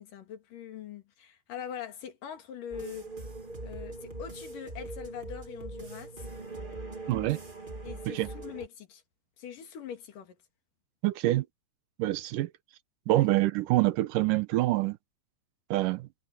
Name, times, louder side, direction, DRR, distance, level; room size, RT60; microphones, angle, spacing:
voice 1, 0.0-3.1 3.6-6.1 7.8-9.0 9.4-10.4 13.1-13.3, left 8 dB, 80° left, 3.9 m, -42 dB
sound 1, 2.7-8.7, right 2 dB, 15° right, 2.2 m, -41 dB
voice 2, 7.1-7.4 8.1-8.3 11.0-11.5 12.0-12.5 13.1-15.0 15.7-16.1, right 17 dB, 80° right, 2.4 m, -26 dB
omnidirectional pair, 3.8 m